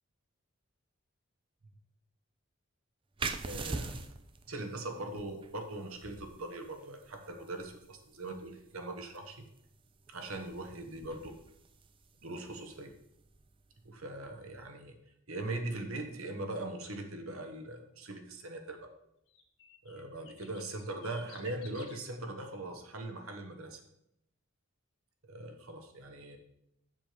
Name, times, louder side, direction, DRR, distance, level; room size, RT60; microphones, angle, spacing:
sound 1, 3.2-14.5, right 3 dB, 25° right, 0.4 m, -45 dB
voice 1, 3.4-4.1 4.5-9.4 10.1-11.3 12.2-12.9 13.8-15.0 15.3-18.9 19.8-23.8 25.3-26.4, right 2 dB, 80° right, 5 dB, 1.3 m, -41 dB
sound 2, 16.8-17.0 19.3-22.0, left 6 dB, 65° left, 1.9 m, -55 dB
7.3 x 6.8 x 5.1 m, 0.77 s
head